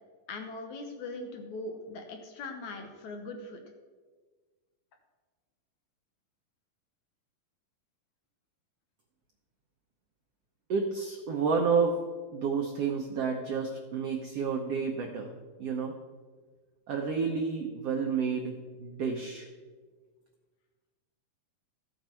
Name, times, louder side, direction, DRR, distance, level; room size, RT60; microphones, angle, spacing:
voice 1, 0.3-3.6, left 2 dB, 70° left, 4 dB, 2.0 m, -40 dB
voice 2, 10.7-12.0 12.3-15.3 15.6-16.0 16.9-19.5, right 5 dB, 90° right, 3 dB, 1.3 m, -30 dB
14.0 x 7.9 x 4.4 m, 1.5 s
omnidirectional pair, 3.9 m